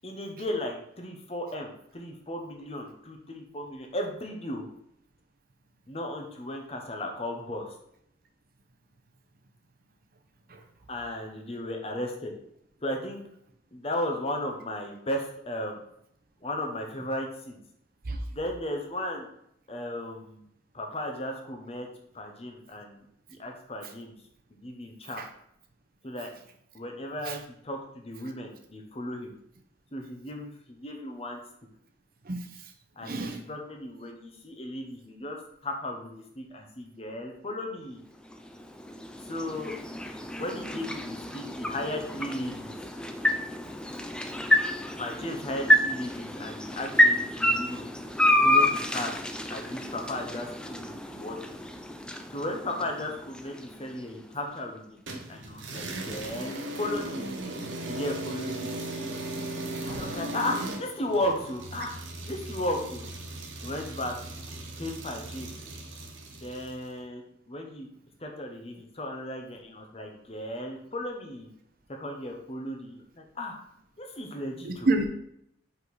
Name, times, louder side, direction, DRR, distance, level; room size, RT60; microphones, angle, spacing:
voice 1, 0.0-4.7 5.9-7.7 10.9-12.3 12.8-13.2 13.7-15.8 16.4-17.6 18.3-19.3 19.7-20.5 20.7-21.9 22.1-24.2 24.5-25.2 26.0-26.3 26.7-29.3 29.9-31.4 33.0-38.0 39.3-39.8 40.4-42.8 45.0-47.9 48.4-49.1 49.5-51.4 52.3-54.9 55.1-57.3 57.9-58.7 59.8-61.9 62.3-63.1 63.6-64.1 64.8-65.5 66.3-67.9 68.2-71.5 71.9-73.5 74.0-74.9, left 1 dB, 30° left, 2 dB, 0.9 m, -35 dB
voice 2, 33.0-33.4 59.9-60.0 74.6-75.1, right 2 dB, 50° right, 5 dB, 0.7 m, -28 dB
sound 1, 38.1-54.3, left 1 dB, 5° left, 0.4 m, -28 dB
sound 2, 55.1-66.8, right 1 dB, 80° right, 0.9 m, -37 dB
5.1 x 4.7 x 4.1 m, 0.73 s
head